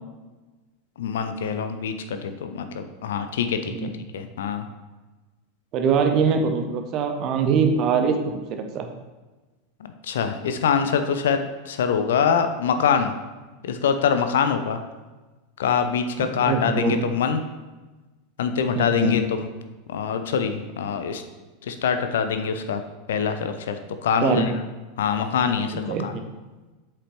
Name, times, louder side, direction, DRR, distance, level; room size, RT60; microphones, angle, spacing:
voice 1, 1.0-3.7 4.1-4.6 10.0-13.1 13.6-14.8 15.6-17.4 18.4-19.4 19.9-21.2 21.7-22.8 23.1-23.8 24.0-24.5 25.0-26.1, left 7 dB, 65° left, 8 dB, 0.5 m, -24 dB
voice 2, 5.7-8.9 16.2-17.0 18.7-19.2 24.2-24.5 25.7-26.2, right 5 dB, 40° right, 6 dB, 0.8 m, -23 dB
8.0 x 5.8 x 3.2 m, 1.2 s
figure-of-eight pair, 85°, 0 cm